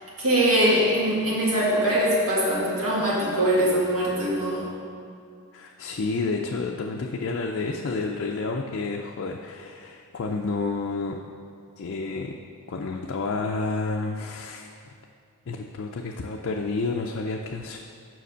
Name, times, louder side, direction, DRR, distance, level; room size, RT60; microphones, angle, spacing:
voice 1, 0.2-4.7, right 1 dB, 70° right, -6 dB, 1.8 m, -22 dB
voice 2, 5.5-11.2 11.8-12.3 12.7-14.9 15.5-17.8, left 3 dB, 55° left, 1 dB, 0.4 m, -30 dB
5.8 x 5.1 x 6.6 m, 2.4 s
head